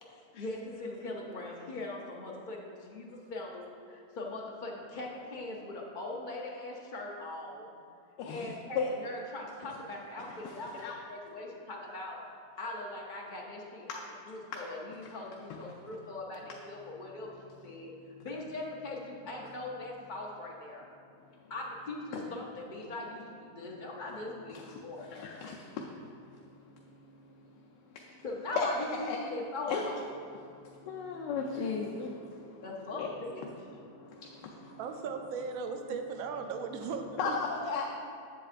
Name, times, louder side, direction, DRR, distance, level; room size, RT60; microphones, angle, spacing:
voice 1, 0.0-7.7 8.3-12.2 12.6-14.0 14.3-17.9 18.2-20.9 21.5-25.1 28.2-30.0 32.6-33.4, left 2 dB, 60° left, -2 dB, 0.5 m, -40 dB
voice 2, 8.2-8.9 10.4-10.9 15.5-15.6 22.1-22.2 24.5-27.4 27.9-28.2 28.6-28.7 29.0-29.2 29.7-29.9 30.4-32.7 32.9-33.1 33.4-33.5 33.9-34.8 37.2-37.9, left 5 dB, 85° left, -1 dB, 1.2 m, -37 dB
voice 3, 34.8-37.4, right 5 dB, 70° right, 5 dB, 0.9 m, -37 dB
7.8 x 7.7 x 2.5 m, 2.4 s
omnidirectional pair, 1.9 m